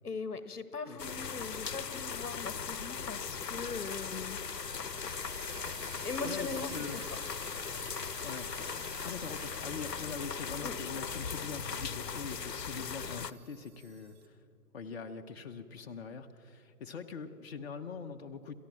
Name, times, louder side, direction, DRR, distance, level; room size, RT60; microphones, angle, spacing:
voice 1, 0.0-4.4 5.0-5.1 6.0-7.1 10.6-10.7, left 4 dB, 70° left, 13 dB, 1.5 m, -40 dB
sound 1, 1.0-13.3, left 6 dB, 85° left, 0.9 m, -39 dB
sound 2, 2.8-14.3, right 8 dB, 10° right, 1.0 m, -53 dB
voice 2, 6.2-7.0 8.2-8.5 9.0-14.4 14.7-18.6, left 5 dB, 40° left, 6 dB, 1.0 m, -43 dB
28.5 x 14.0 x 7.4 m, 2.5 s
figure-of-eight pair, 145°, 48 cm